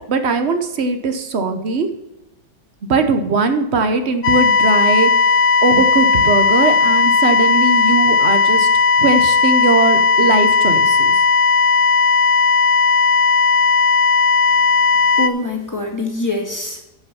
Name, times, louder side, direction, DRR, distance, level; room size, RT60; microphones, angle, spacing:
voice 1, 0.1-1.9 2.9-8.7 9.0-11.2, right 4 dB, 45° right, 8 dB, 1.0 m, -19 dB
sound 1, 4.2-15.3, left 4 dB, 65° left, 0.8 m, -15 dB
voice 2, 14.5-16.8, left 2 dB, 10° left, 1 dB, 1.7 m, -25 dB
9.8 x 5.5 x 6.8 m, 0.96 s
omnidirectional pair, 1.9 m